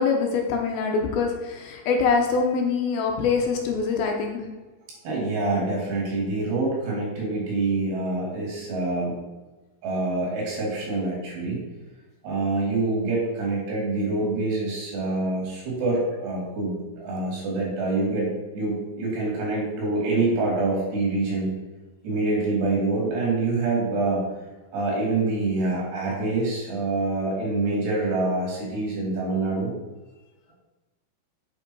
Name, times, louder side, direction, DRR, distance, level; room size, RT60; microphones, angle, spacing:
voice 1, 0.0-4.4, left 5 dB, 75° left, 2 dB, 2.6 m, -24 dB
voice 2, 5.0-9.2 9.8-11.6 12.2-21.5 22.0-24.2 24.7-29.7, right 2 dB, 75° right, -3 dB, 4.6 m, -26 dB
8.0 x 5.4 x 4.6 m, 1.2 s
omnidirectional pair, 4.7 m